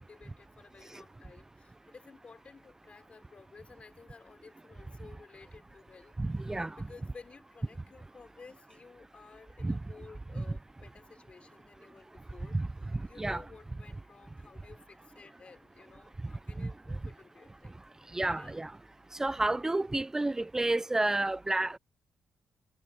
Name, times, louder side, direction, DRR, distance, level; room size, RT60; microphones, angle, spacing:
voice 1, 0.0-6.1 6.8-12.6 13.1-17.8 18.4-18.6, left 4 dB, 40° left, 3.4 m, -54 dB
voice 2, 6.2-6.9 9.6-9.8 10.4-10.5 12.5-12.7 13.2-13.4 16.6-16.7 18.1-18.7 19.2-21.8, right 2 dB, 15° right, 0.4 m, -30 dB
cardioid pair, 95°, 3 cm